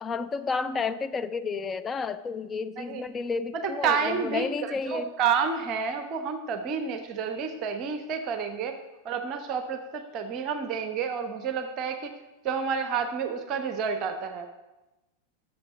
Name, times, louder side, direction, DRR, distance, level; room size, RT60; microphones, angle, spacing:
voice 1, 0.0-5.1, left 5 dB, 20° left, 11 dB, 0.4 m, -31 dB
voice 2, 3.6-8.8 9.0-12.1 12.4-14.5, right 6 dB, 35° right, 7 dB, 0.8 m, -29 dB
6.8 x 6.4 x 7.3 m, 1.0 s
figure-of-eight pair, 90°, 0 cm